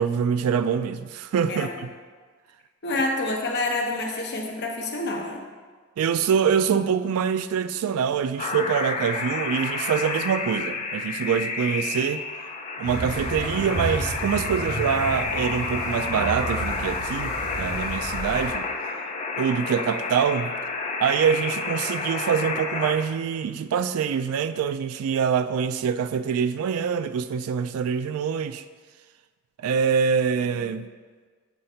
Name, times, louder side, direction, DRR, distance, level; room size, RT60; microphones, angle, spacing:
voice 1, 0.0-1.9 6.0-12.2 12.8-18.7 19.4-20.6 21.0-28.6 29.6-30.9, right 7 dB, 75° right, 12 dB, 0.3 m, -25 dB
voice 2, 2.8-5.4, left 2 dB, 50° left, 0 dB, 1.0 m, -27 dB
sound 1, 8.4-22.9, left 4 dB, 30° left, 0.5 m, -30 dB
sound 2, 12.8-18.5, right 2 dB, 50° right, 1.1 m, -33 dB
7.2 x 3.2 x 5.5 m, 1.5 s
head